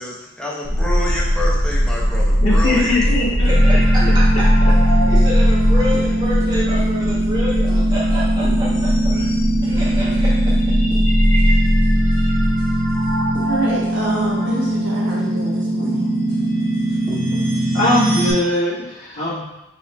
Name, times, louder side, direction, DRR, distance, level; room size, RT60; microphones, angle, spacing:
voice 1, 0.0-2.9, left 1 dB, 5° left, -5 dB, 0.8 m, -27 dB
sound 1, 0.6-13.5, equal, 65° left, 1.0 m, -18 dB
voice 2, 2.4-4.4 5.0-5.1 17.7-19.4, left 2 dB, 85° left, -11 dB, 1.5 m, -21 dB
voice 3, 3.4-4.5 5.1-9.3 9.6-10.5 11.4-11.6, equal, 20° right, -8 dB, 1.4 m, -28 dB
sound 2, 3.5-18.3, right 1 dB, 20° left, 1.2 m, -21 dB
voice 4, 13.4-16.1 16.9-17.4, right 1 dB, 60° right, -5 dB, 1.2 m, -27 dB
4.5 x 2.9 x 3.3 m, 0.93 s
head